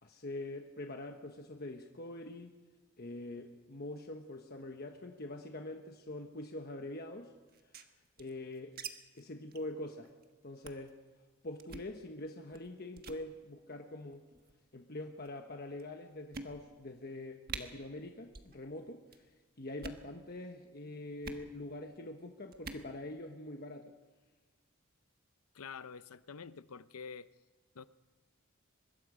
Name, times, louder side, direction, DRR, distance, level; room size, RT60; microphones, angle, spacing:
voice 1, 0.0-2.6 3.0-7.3 8.2-8.8 9.1-10.1 10.4-11.0 11.4-14.3 14.7-23.9, left 2 dB, 45° left, 3 dB, 1.2 m, -44 dB
sound 1, 7.5-8.9 9.2-9.3 9.5-9.7 10.1-10.2 10.6-10.9 11.6-11.9 12.5-12.7 13.0-13.2 14.1-14.5 15.3-15.4 15.8-15.9 16.3-16.9 17.2-17.3 17.5-17.6 18.3-18.6 18.8-19.2 19.7-20.1 21.2-21.5 22.5-22.9, right 5 dB, 45° right, 1.4 m, -45 dB
voice 2, 25.5-27.3 27.7-27.9, left 6 dB, 90° left, 14 dB, 0.7 m, -47 dB
24.5 x 21.5 x 5.1 m, 1.3 s
head